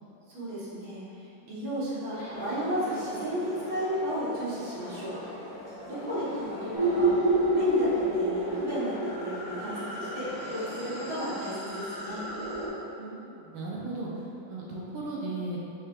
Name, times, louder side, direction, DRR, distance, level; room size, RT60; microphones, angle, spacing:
voice 1, 0.3-5.2 5.8-7.2 7.5-12.2, equal, 55° right, -10 dB, 1.8 m, -34 dB
sound 1, 2.1-11.2, left 1 dB, 70° left, 1.6 m, -42 dB
sound 2, 6.7-12.7, right 1 dB, 30° right, 0.5 m, -29 dB
voice 2, 10.1-10.5 12.9-15.6, right 2 dB, 90° right, -5 dB, 1.6 m, -37 dB
6.5 x 3.4 x 2.3 m, 2.9 s
omnidirectional pair, 2.1 m